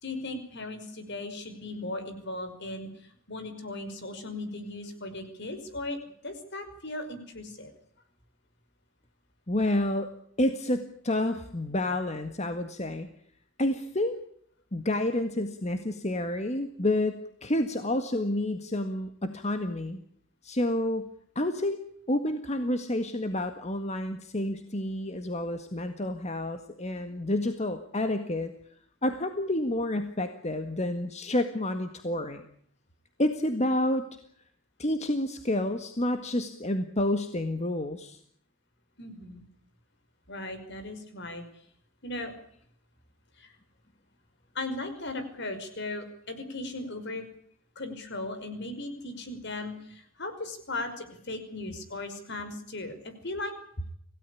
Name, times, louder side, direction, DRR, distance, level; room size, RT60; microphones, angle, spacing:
voice 1, 0.0-2.9 3.3-6.0 6.2-7.7 39.0-39.4 40.3-41.4 42.0-42.3 43.4-43.5 44.5-47.2 47.8-53.0 53.2-53.5, left 2 dB, 60° left, 9 dB, 5.6 m, -37 dB
voice 2, 9.5-10.1 10.4-13.1 13.6-14.1 14.7-20.0 20.4-21.1 21.4-28.5 29.0-32.4 33.2-34.0 34.8-38.2, left 1 dB, 35° left, 7 dB, 1.8 m, -29 dB
27.5 x 17.0 x 8.5 m, 0.66 s
head